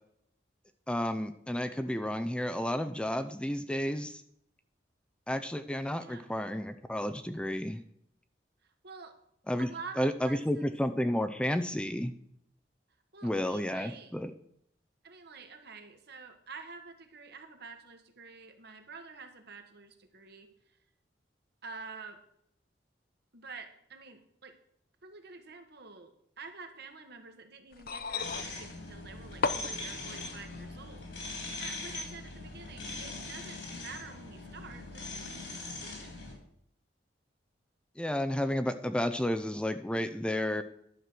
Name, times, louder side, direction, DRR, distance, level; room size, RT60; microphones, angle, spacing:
voice 1, 0.9-4.2 5.3-7.8 9.5-9.7 10.0-12.1 13.2-14.3 38.0-40.6, left 1 dB, 5° left, 8 dB, 0.5 m, -31 dB
voice 2, 8.8-9.1 9.6-10.7 13.1-14.1 15.0-20.5 21.6-22.2 23.3-24.6 25.0-36.3, right 4 dB, 60° right, 6 dB, 1.5 m, -48 dB
sound 1, 27.7-30.7 31.8-31.9, left 5 dB, 55° left, 0.7 m, -36 dB
sound 2, 28.2-36.3, left 2 dB, 75° left, 3.3 m, -41 dB
11.0 x 6.5 x 6.0 m, 0.70 s
head